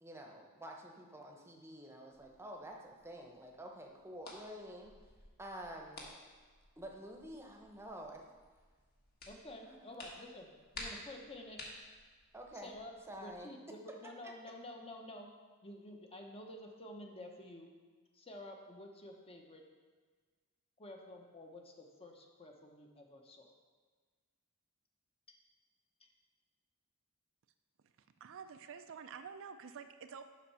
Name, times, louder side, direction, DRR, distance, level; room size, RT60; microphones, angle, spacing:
voice 1, 0.0-4.9 5.4-6.1 6.8-8.2 9.7-10.0 12.3-12.7 13.1-13.5 14.0-14.1, right 1 dB, 10° right, 1 dB, 0.9 m, -49 dB
sound 1, 2.1-13.4, left 2 dB, 45° left, 1.5 m, -54 dB
voice 2, 9.3-11.6 12.5-12.9 13.2-15.3 15.6-17.7 18.1-19.6 20.8-23.5, left 1 dB, 25° left, 2 dB, 0.9 m, -50 dB
voice 3, 27.8-30.2, right 6 dB, 60° right, 8 dB, 0.4 m, -49 dB
7.4 x 5.6 x 5.6 m, 1.5 s
head